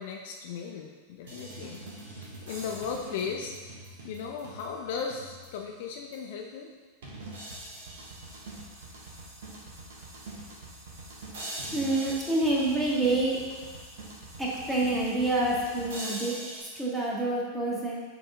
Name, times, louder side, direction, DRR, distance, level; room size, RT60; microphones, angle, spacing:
voice 1, 0.0-1.8 2.1-3.6 4.0-6.7, left 6 dB, 50° left, 2 dB, 0.5 m, -36 dB
sound 1, 1.3-5.7 6.1-6.2 7.0-16.6, right 2 dB, 55° right, 1.3 m, -43 dB
voice 2, 11.7-13.4 14.4-18.0, right 2 dB, 10° right, -5 dB, 1.5 m, -27 dB
6.8 x 3.9 x 3.6 m, 1.4 s
figure-of-eight pair, 90°, 0 cm